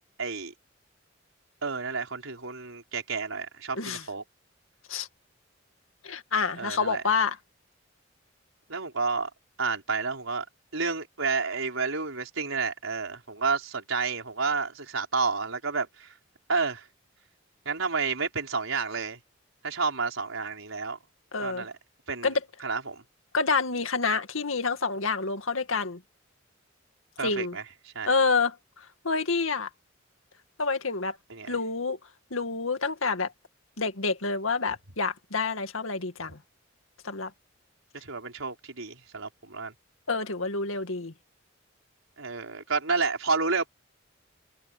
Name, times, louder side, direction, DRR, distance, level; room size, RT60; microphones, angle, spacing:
voice 1, 0.2-0.5 1.6-4.2 6.6-7.0 8.7-9.3 9.6-10.4 10.7-16.1 16.5-16.8 17.6-19.2 19.6-21.0 21.4-21.7 22.1-22.3 22.6-23.0 27.2-27.6 27.9-28.1 31.3-31.5 37.9-39.7 42.2-43.7, right 4 dB, 85° right, 5.0 m, -30 dB
voice 2, 6.0-7.4 21.3-21.6 22.2-22.4 23.3-26.0 27.2-27.6 28.1-29.7 30.6-31.2 31.5-32.0 32.3-33.3 33.8-36.4 37.0-37.3 40.1-41.1, left 4 dB, 85° left, 2.2 m, -28 dB
head